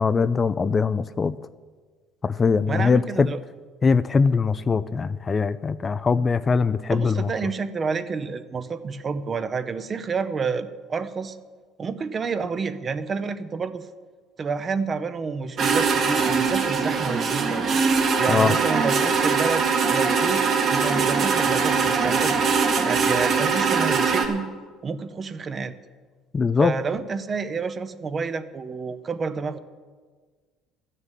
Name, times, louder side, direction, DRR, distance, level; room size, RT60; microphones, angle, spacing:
voice 1, 0.0-1.4 2.2-3.3 3.8-7.3 18.3-18.5 26.3-26.7, left 5 dB, 30° left, 14 dB, 0.4 m, -21 dB
voice 2, 2.7-3.4 6.9-11.4 11.8-13.9 14.4-17.6 18.2-24.5 24.8-25.7 26.6-29.6, right 5 dB, 35° right, 12 dB, 0.8 m, -29 dB
sound 1, 15.6-24.2, right 5 dB, 50° right, 1.9 m, -22 dB
13.0 x 6.7 x 9.1 m, 1.5 s
cardioid pair, 105°, 0 cm